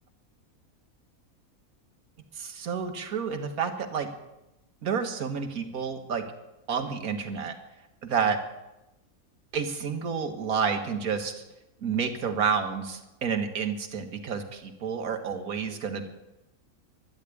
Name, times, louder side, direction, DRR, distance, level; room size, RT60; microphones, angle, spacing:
voice 1, 2.4-4.1 4.8-6.2 6.7-7.5 8.0-8.4 9.5-11.4 11.8-16.1, right 6 dB, 75° right, 6 dB, 1.9 m, -29 dB
12.0 x 11.5 x 8.4 m, 0.95 s
omnidirectional pair, 1.5 m